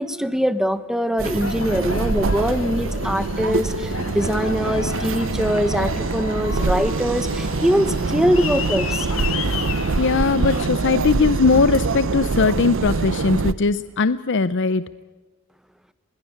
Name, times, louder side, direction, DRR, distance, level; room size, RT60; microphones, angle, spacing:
voice 1, 0.0-9.1, equal, ahead, 12 dB, 1.0 m, -22 dB
Aircraft, 1.2-10.7, left 4 dB, 70° left, 2.3 m, -32 dB
sound 1, 1.2-13.5, right 3 dB, 65° right, 0.7 m, -24 dB
voice 2, 10.0-14.8, left 4 dB, 55° left, 15 dB, 0.6 m, -19 dB
21.5 x 18.5 x 8.6 m, 1.3 s
head